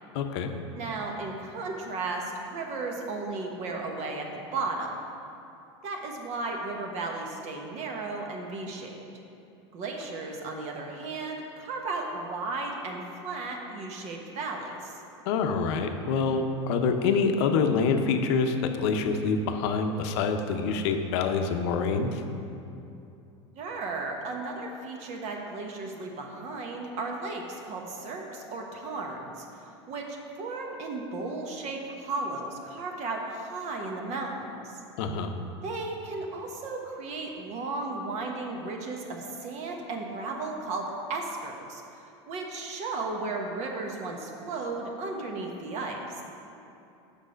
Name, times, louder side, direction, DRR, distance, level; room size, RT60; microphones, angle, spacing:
voice 1, 0.1-0.5 15.3-22.2 35.0-35.3, left 5 dB, 65° left, 6 dB, 0.7 m, -26 dB
voice 2, 0.7-4.3 4.5-5.0 5.8-9.0 9.7-15.0 23.5-34.8 35.6-41.8 42.3-46.2, right 3 dB, 50° right, 1 dB, 1.1 m, -35 dB
6.6 x 5.3 x 5.1 m, 2.7 s
hypercardioid pair, 100°, 15 cm